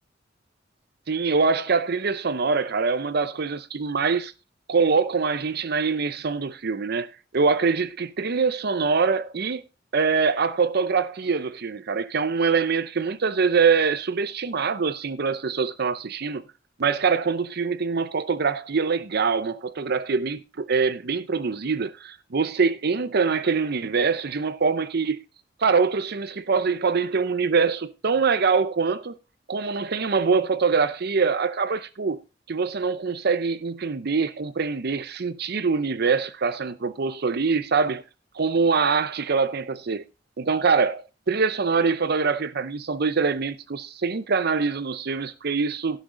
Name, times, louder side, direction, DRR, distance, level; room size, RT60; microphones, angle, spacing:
voice 1, 1.1-4.3 4.7-9.6 9.9-16.4 16.8-25.2 25.6-29.1 29.5-32.2 32.5-38.0 38.3-40.0 40.4-46.0, right 5 dB, 60° right, 0.7 m, -24 dB
16.5 x 6.2 x 3.8 m
head